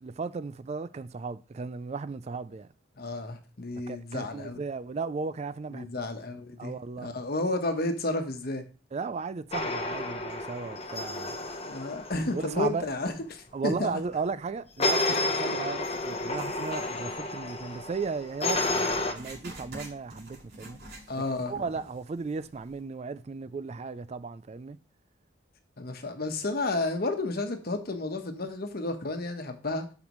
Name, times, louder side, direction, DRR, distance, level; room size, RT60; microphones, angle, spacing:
voice 1, 0.0-2.7 3.9-5.9 6.6-7.1 8.9-11.3 12.3-12.9 13.5-20.8 21.5-24.8, right 4 dB, 35° right, 0.3 m, -35 dB
voice 2, 3.0-4.6 5.7-8.6 11.6-14.0 15.5-15.7 21.1-21.6 25.8-29.9, left 2 dB, 55° left, 1.1 m, -32 dB
sound 1, 9.5-12.7 14.8-19.1, left 2 dB, 30° left, 0.9 m, -31 dB
Writing, 18.5-21.5 21.8-21.9 22.6-22.7, right 1 dB, 65° right, 4.8 m, -46 dB
12.5 x 5.0 x 3.1 m
head